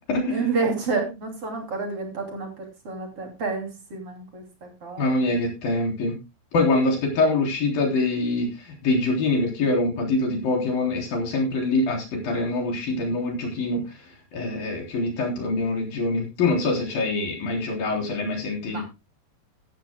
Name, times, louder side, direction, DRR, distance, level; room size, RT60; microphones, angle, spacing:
voice 1, 0.3-5.1 18.6-18.8, right 4 dB, 40° right, 2 dB, 3.6 m, -29 dB
voice 2, 5.0-6.2 6.5-13.8 14.3-18.8, left 2 dB, 80° left, 1 dB, 5.3 m, -24 dB
15.0 x 14.0 x 2.2 m, 0.25 s
omnidirectional pair, 4.0 m